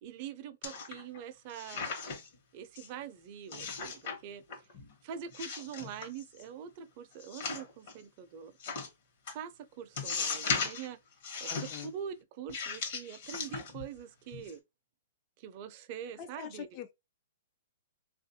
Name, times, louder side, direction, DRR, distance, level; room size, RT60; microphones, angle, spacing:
voice 1, 0.0-1.9 2.5-4.4 5.0-8.5 9.3-11.0 11.4-14.6 15.4-16.7, right 8 dB, 40° right, 0.5 m, -44 dB
sound 1, 0.6-1.2 1.5-2.3 2.7-2.9 3.5-4.2 4.5-4.9 5.3-6.4 7.2-7.9 8.6-8.9 9.3-9.4 10.0-10.9 11.2-11.9 12.5-14.0 14.3-14.5, left 5 dB, 50° left, 1.1 m, -37 dB
voice 2, 11.5-11.9 16.2-16.9, left 9 dB, 30° left, 0.5 m, -44 dB
3.4 x 2.4 x 2.7 m
hypercardioid pair, 155°, 0 cm